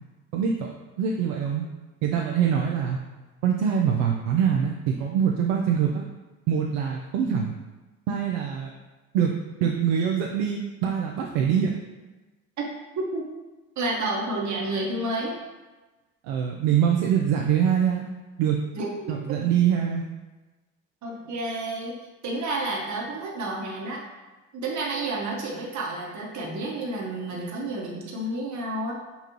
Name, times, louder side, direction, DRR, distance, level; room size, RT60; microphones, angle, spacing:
voice 1, 1.0-1.7 2.0-3.0 3.4-6.1 6.5-7.5 8.1-8.7 9.1-9.3 9.6-11.7 16.2-18.0 18.4-18.6 19.1-20.0, right 8 dB, 75° right, 0 dB, 0.5 m, -24 dB
voice 2, 13.8-15.4 18.7-19.4 21.0-22.0 22.2-24.0 24.5-28.9, right 2 dB, 45° right, -2 dB, 1.0 m, -30 dB
5.3 x 2.3 x 2.9 m, 1.2 s
hypercardioid pair, 50°, 41 cm